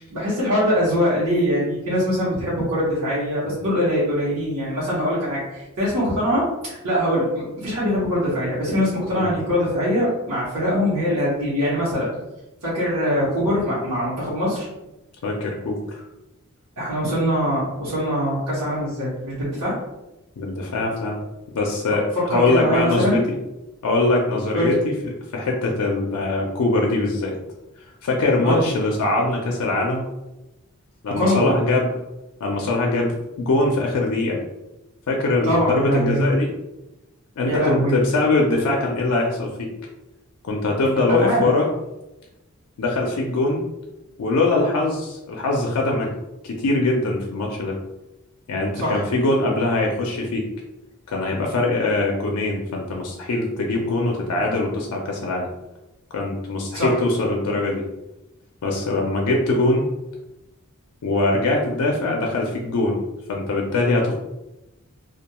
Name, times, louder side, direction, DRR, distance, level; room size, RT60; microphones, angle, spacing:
voice 1, 0.1-12.1 12.6-14.7 16.8-19.8 22.1-23.2 24.5-24.8 28.4-28.7 31.2-31.5 35.4-36.2 37.5-37.9 41.2-41.4 48.7-49.0 56.7-57.0, equal, 80° right, -10 dB, 0.9 m, -22 dB
voice 2, 15.2-15.8 20.4-21.2 21.5-22.0 22.3-23.2 23.8-27.4 28.0-30.0 31.0-31.9 32.4-34.4 35.1-36.5 37.4-39.7 40.4-41.7 42.8-43.6 44.2-46.1 46.4-47.8 48.5-50.5 51.1-55.5 56.1-57.8 58.6-59.8 61.0-63.0 63.3-64.1, left 2 dB, 85° left, 0 dB, 0.4 m, -22 dB
2.3 x 2.2 x 2.9 m, 0.98 s
head